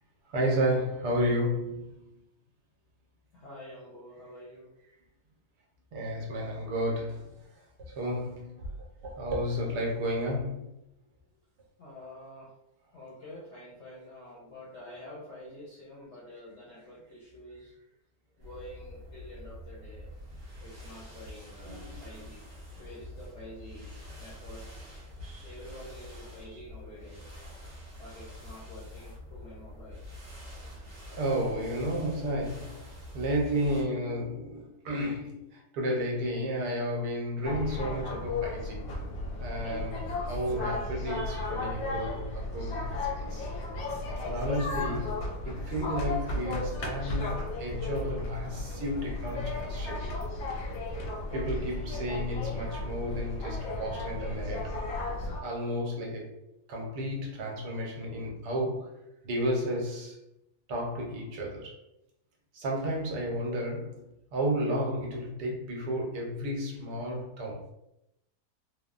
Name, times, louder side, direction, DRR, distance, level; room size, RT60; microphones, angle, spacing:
voice 1, 0.3-2.0 5.9-8.7 9.0-10.7 21.6-22.2 25.2-25.6 26.2-26.6 31.1-38.8 39.4-43.5 44.2-50.0 51.3-54.7 55.4-56.4 56.7-59.0 59.2-60.2 60.7-61.7 62.5-67.7, equal, 75° right, -1 dB, 1.3 m, -32 dB
voice 2, 3.3-4.7 11.8-12.5 12.9-17.7 18.4-20.1 20.6-22.4 22.7-24.7 25.4-27.5 28.0-30.0, left 1 dB, 60° left, -5 dB, 0.7 m, -48 dB
sound 1, 18.4-33.8, left 1 dB, 30° right, 0.8 m, -46 dB
sound 2, 37.4-55.4, left 2 dB, 85° left, 1.2 m, -34 dB
3.3 x 2.1 x 2.4 m, 0.84 s
omnidirectional pair, 1.8 m